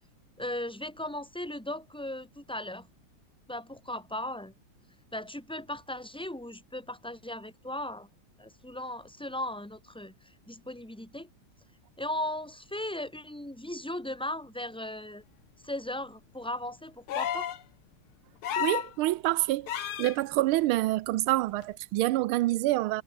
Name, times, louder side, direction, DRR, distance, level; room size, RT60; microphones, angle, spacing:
voice 1, 0.4-2.9 3.5-4.5 5.1-8.1 8.4-10.1 10.5-11.3 12.0-15.2 15.6-17.5, left 1 dB, ahead, 3.0 m, -37 dB
sound 1, 17.1-17.6 18.4-18.9 19.7-20.2 21.6-21.7, left 10 dB, 90° left, 2.1 m, -31 dB
voice 2, 18.6-23.0, right 17 dB, 85° right, 1.5 m, -27 dB
omnidirectional pair, 2.3 m